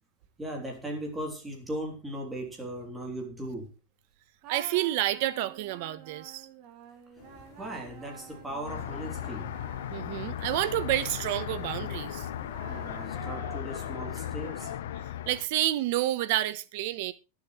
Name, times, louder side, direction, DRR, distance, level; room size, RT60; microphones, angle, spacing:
voice 1, 0.4-3.7 7.6-9.5 12.7-14.7, right 1 dB, 5° right, 3.5 m, -38 dB
sound 1, 4.4-10.7 11.2-15.2, right 8 dB, 35° right, 2.5 m, -49 dB
voice 2, 4.5-6.5 9.9-12.3 15.3-17.1, right 14 dB, 50° right, 1.1 m, -29 dB
sound 2, 7.2-13.2, left 8 dB, 45° left, 2.9 m, -52 dB
sound 3, 8.7-15.5, left 11 dB, 90° left, 1.0 m, -36 dB
22.5 x 7.7 x 3.3 m
supercardioid pair, 170°, 0 cm